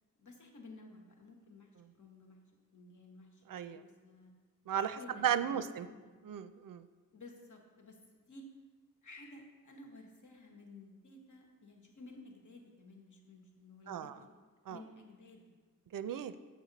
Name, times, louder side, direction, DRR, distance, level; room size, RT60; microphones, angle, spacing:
voice 1, 0.2-2.4 2.7-4.3 5.0-6.1 7.1-8.5 9.0-14.3 14.7-15.5, left 2 dB, 60° left, 2 dB, 1.2 m, -54 dB
voice 2, 3.5-3.8 4.7-5.9 6.2-6.9 13.9-14.2 14.7-14.8 15.9-16.3, right 9 dB, 75° right, 12 dB, 0.5 m, -35 dB
7.8 x 6.5 x 3.9 m, 1.4 s
cardioid pair, 70°, 33 cm